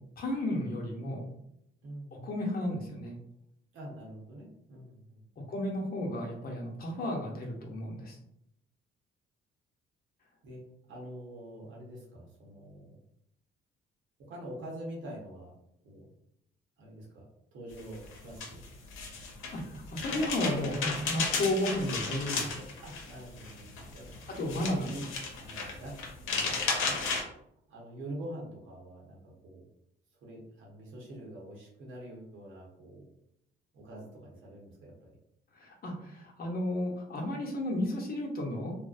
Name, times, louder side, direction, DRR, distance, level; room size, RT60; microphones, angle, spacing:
voice 1, 0.2-1.2 2.1-3.2 5.5-8.2 19.5-22.7 24.4-24.9 35.6-38.7, left 1 dB, 50° left, -1 dB, 0.7 m, -33 dB
voice 2, 3.7-5.5 10.4-10.6 10.9-13.0 14.3-15.5 15.8-16.1 16.8-17.2 17.5-18.6 22.8-25.1 25.4-27.3 27.7-29.7 30.2-33.1 33.7-35.2, right 1 dB, 80° right, -3 dB, 1.0 m, -45 dB
sound 1, 17.8-27.2, left 4 dB, 90° left, 0.6 m, -34 dB
2.6 x 2.0 x 2.4 m, 0.76 s
cardioid pair, 90°, 20 cm